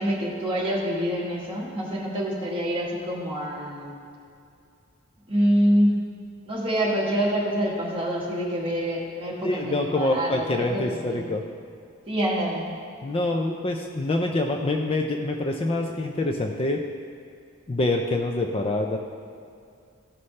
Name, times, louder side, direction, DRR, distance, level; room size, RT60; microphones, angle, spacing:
voice 1, 0.0-4.0 5.3-5.9 6.4-11.3 12.1-12.7, equal, 25° right, -5 dB, 1.5 m, -26 dB
voice 2, 9.4-11.4 13.0-16.8 17.7-19.0, left 2 dB, 25° left, 3 dB, 0.4 m, -25 dB
14.5 x 5.5 x 3.2 m, 2.4 s
head